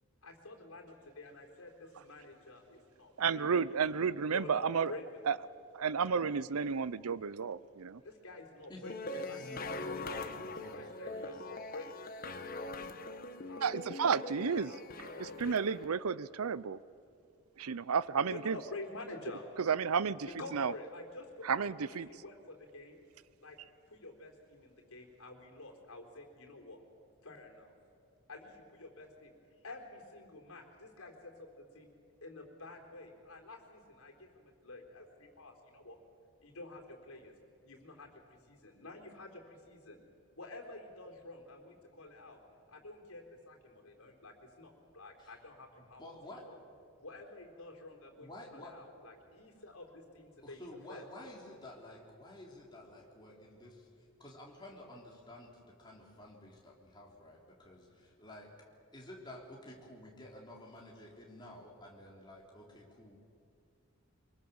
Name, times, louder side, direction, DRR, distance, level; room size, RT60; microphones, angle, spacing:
voice 1, 0.2-1.7 2.0-3.5 4.3-5.4 8.0-9.0 9.3-13.0 13.4-16.1 18.2-19.5 20.2-23.0 23.4-23.6 23.9-26.8 27.2-27.7 28.3-29.3 29.6-31.9 32.2-36.0 36.4-37.3 37.6-40.0 40.3-42.4 42.7-46.0 46.5-46.6 47.0-50.6 50.9-51.1, left 2 dB, 80° left, 2 dB, 3.9 m, -49 dB
voice 2, 3.2-4.9 5.3-5.4 5.7-8.0 13.6-14.7 15.2-16.8 17.6-18.6 19.6-20.3 20.5-20.7 21.4-22.1, right 6 dB, 85° right, 19 dB, 0.6 m, -32 dB
sound 1, 8.8-15.8, left 2 dB, 40° left, 1.2 m, -42 dB
voice 3, 9.3-11.5 45.2-45.3 45.8-46.4 48.2-48.7 50.4-53.9 54.2-58.5 58.9-63.2, left 1 dB, 20° left, -2 dB, 3.6 m, -51 dB
24.5 x 23.0 x 7.1 m, 2.4 s
head